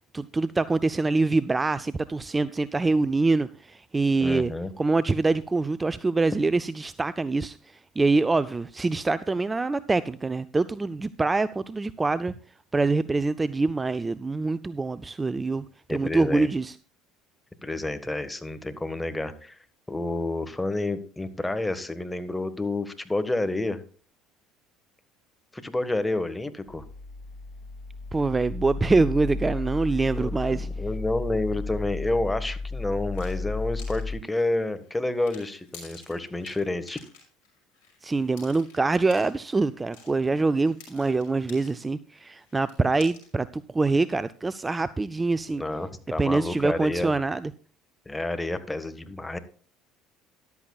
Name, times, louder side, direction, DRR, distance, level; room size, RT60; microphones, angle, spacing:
voice 1, 0.1-7.6 8.0-12.3 12.7-16.7 28.1-30.7 38.0-45.6 46.2-47.5, right 3 dB, 20° right, 15 dB, 0.5 m, -25 dB
voice 2, 4.2-4.7 15.9-16.5 17.6-19.6 19.9-23.8 25.5-26.8 30.2-37.0 45.6-47.1 48.0-49.4, left 2 dB, 10° left, 10 dB, 1.5 m, -29 dB
sound 1, 26.7-34.2, left 3 dB, 60° left, 2.1 m, -33 dB
sound 2, 33.1-41.9 42.1-43.4, left 5 dB, 75° left, 5.9 m, -51 dB
14.0 x 11.5 x 2.4 m, 0.40 s
hypercardioid pair, 75°, 0 cm